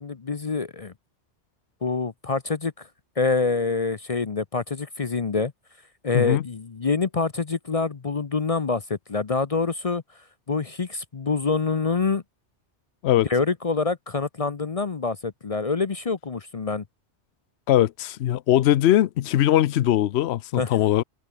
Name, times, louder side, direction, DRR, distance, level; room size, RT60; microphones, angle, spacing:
voice 1, 0.0-0.9 1.8-2.9 3.2-5.5 6.0-10.0 10.5-12.2 13.3-16.8 20.6-20.8, left 4 dB, 35° left, 0.7 m, -26 dB
voice 2, 17.7-21.0, left 13 dB, 70° left, 0.9 m, -20 dB
open air
omnidirectional pair, 1.2 m